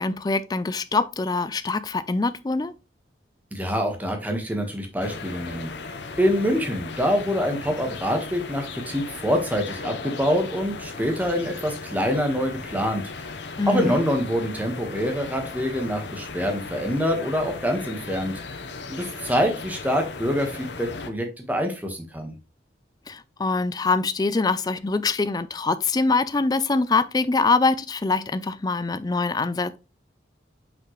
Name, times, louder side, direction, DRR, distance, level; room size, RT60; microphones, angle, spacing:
voice 1, 0.0-2.7 13.6-14.0 23.1-29.8, left 3 dB, 20° left, 0.4 m, -24 dB
voice 2, 3.5-5.7 6.2-13.3 13.7-18.6 18.9-22.3, equal, 10° right, 1.3 m, -25 dB
sound 1, 5.0-21.1, left 4 dB, 75° left, 0.9 m, -37 dB
6.0 x 5.5 x 3.1 m
head